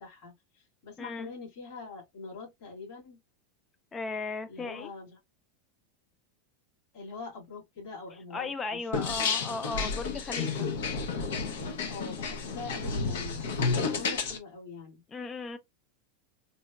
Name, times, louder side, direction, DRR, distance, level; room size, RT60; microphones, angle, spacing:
voice 1, 0.0-3.2 4.5-5.2 6.9-9.2 11.8-13.4 13.7-15.0, left 4 dB, 55° left, 2.2 m, -44 dB
voice 2, 1.0-1.3 3.9-4.9 8.3-10.7 15.1-15.6, left 3 dB, 20° left, 0.5 m, -36 dB
sound 1, 8.9-14.4, left 4 dB, 90° left, 0.8 m, -31 dB
4.0 x 2.1 x 2.4 m
supercardioid pair, 145°, 0 cm